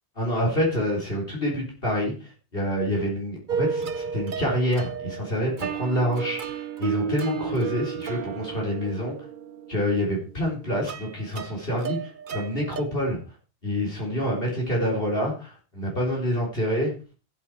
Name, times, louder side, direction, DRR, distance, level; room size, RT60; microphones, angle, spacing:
voice 1, 0.2-9.2 9.7-13.2 13.6-16.9, equal, 55° left, -2 dB, 4.4 m, -27 dB
sound 1, 3.5-12.8, right 6 dB, 50° right, 0.9 m, -32 dB
15.0 x 8.6 x 4.8 m, 0.35 s
omnidirectional pair, 1.1 m